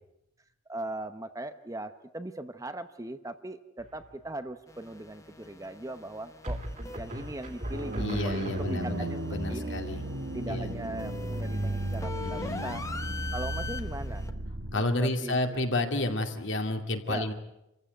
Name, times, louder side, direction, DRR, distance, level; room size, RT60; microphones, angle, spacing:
voice 1, 0.7-9.8 10.3-12.8 13.3-14.3 14.7-15.4 17.1-17.3, right 1 dB, 15° right, 10 dB, 0.8 m, -39 dB
sound 1, 3.8-4.3 6.4-9.1, equal, 35° right, 2.6 m, -38 dB
sound 2, 4.7-14.3, left 4 dB, 15° left, 1.1 m, -43 dB
sound 3, 7.7-14.7, right 1 dB, 60° right, 1.6 m, -34 dB
voice 2, 8.0-10.0 10.5-10.7 12.2-12.8 14.7-17.3, left 2 dB, 60° left, 5 dB, 2.4 m, -31 dB
27.0 x 15.0 x 9.2 m, 0.90 s
head